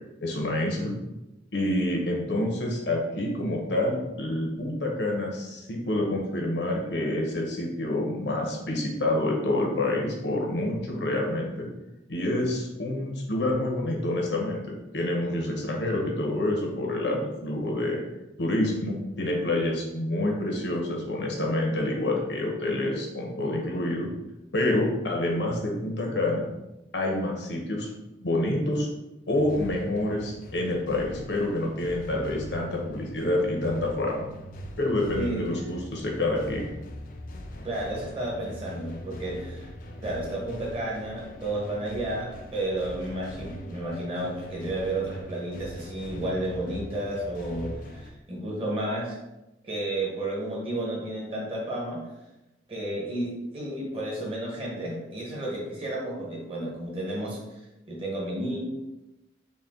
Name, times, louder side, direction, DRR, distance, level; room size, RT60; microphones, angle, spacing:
voice 1, 0.2-0.9 1.5-11.7 12.1-14.6 14.9-18.0 18.4-24.1 24.5-26.5 26.9-27.9 28.2-28.9 29.3-34.4 34.8-36.6, left 1 dB, 85° left, -1 dB, 0.9 m, -27 dB
sound 1, 29.3-48.1, left 1 dB, 50° left, 0.4 m, -41 dB
voice 2, 35.2-35.5 37.6-39.6 40.0-49.1 49.6-52.0 52.7-57.4 57.9-58.6, right 1 dB, 30° right, -4 dB, 1.1 m, -32 dB
4.1 x 2.2 x 3.7 m, 0.98 s
head